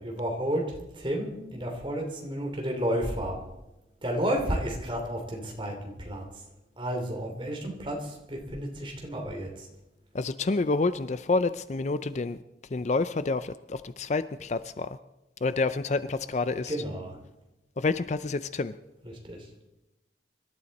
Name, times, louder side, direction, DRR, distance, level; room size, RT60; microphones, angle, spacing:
voice 1, 0.0-3.4 4.0-6.4 6.8-9.7 16.7-17.2 19.0-19.5, equal, 25° right, 1 dB, 2.9 m, -32 dB
voice 2, 10.1-12.4 12.7-15.0 15.4-16.8 17.8-18.8, left 3 dB, 40° left, 13 dB, 0.4 m, -28 dB
25.5 x 12.5 x 4.2 m, 0.98 s
head